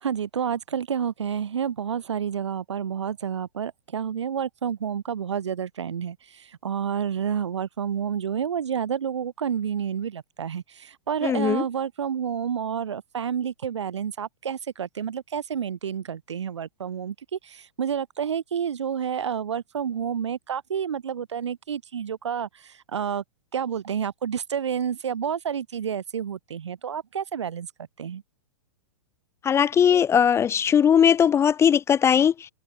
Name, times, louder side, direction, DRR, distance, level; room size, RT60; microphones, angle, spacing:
voice 1, 0.0-23.2 23.5-27.7 28.0-28.2, right 8 dB, 70° right, 2.4 m, -29 dB
voice 2, 11.2-11.6 29.4-32.5, left 8 dB, 15° left, 0.8 m, -19 dB
figure-of-eight pair, 110°, 15 cm